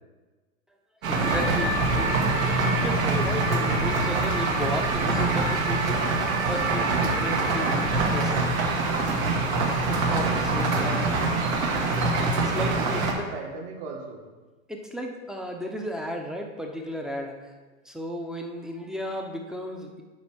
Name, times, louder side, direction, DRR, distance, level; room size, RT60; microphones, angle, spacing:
voice 1, 1.0-8.5 9.9-10.7 12.4-13.3 14.7-17.5 17.8-20.0, equal, ahead, 2 dB, 0.7 m, -34 dB
sound 1, 1.0-13.1, right 3 dB, 75° right, 1.9 m, -24 dB
voice 2, 10.6-11.2 12.7-14.2, right 4 dB, 55° right, 1 dB, 1.8 m, -37 dB
10.0 x 3.4 x 6.2 m, 1.3 s
hypercardioid pair, 125°, 41 cm